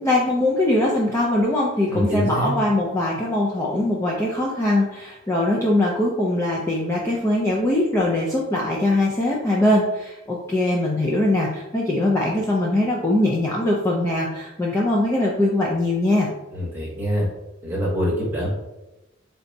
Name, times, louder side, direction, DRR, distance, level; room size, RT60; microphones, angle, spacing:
voice 1, 0.0-16.3, left 1 dB, 15° left, -5 dB, 0.4 m, -21 dB
voice 2, 1.9-2.5 16.5-17.3 17.6-18.5, equal, 10° right, -4 dB, 0.9 m, -24 dB
4.1 x 3.3 x 2.6 m, 0.99 s
head